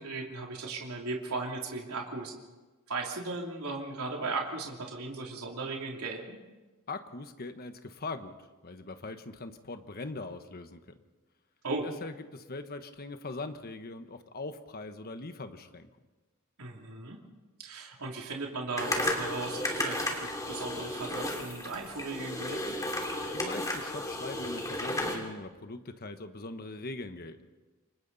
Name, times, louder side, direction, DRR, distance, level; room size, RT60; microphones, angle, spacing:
voice 1, 0.0-2.3 2.9-6.4 11.6-11.8 16.6-17.2 17.6-22.8, right 3 dB, 75° right, 0 dB, 3.1 m, -37 dB
voice 2, 6.9-8.3 8.6-11.0 11.8-15.9 23.3-27.4, left 3 dB, 45° left, 8 dB, 1.2 m, -41 dB
sound 1, 18.8-25.2, left 1 dB, 15° left, 3.0 m, -33 dB
29.0 x 24.5 x 4.1 m, 1.2 s
head